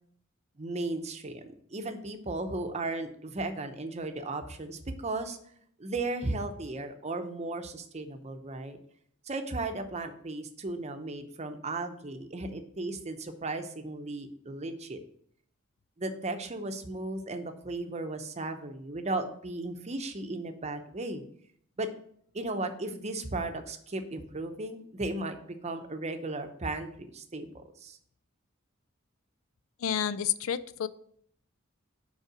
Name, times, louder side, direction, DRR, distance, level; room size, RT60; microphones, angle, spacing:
voice 1, 0.6-5.4 5.8-8.8 9.3-15.0 16.0-21.2 21.8-21.9 22.3-28.0, right 2 dB, 35° right, 7 dB, 0.7 m, -35 dB
voice 2, 29.8-30.9, left 9 dB, 80° left, 15 dB, 0.4 m, -30 dB
5.5 x 4.8 x 6.0 m, 0.65 s
head